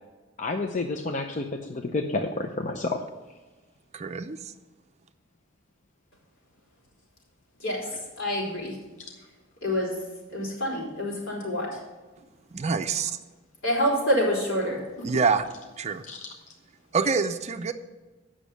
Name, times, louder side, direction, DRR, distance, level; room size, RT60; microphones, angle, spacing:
voice 1, 0.4-3.0 16.1-16.3, left 3 dB, 40° left, 4 dB, 0.6 m, -30 dB
voice 2, 3.9-4.5 12.5-13.2 15.0-15.4 15.8-16.0 16.9-17.7, right 5 dB, 35° right, 9 dB, 0.5 m, -26 dB
voice 3, 8.2-8.8 9.6-10.0 10.3-11.8 13.6-15.1, equal, 75° left, -3 dB, 3.9 m, -27 dB
8.3 x 6.2 x 8.2 m, 1.2 s
head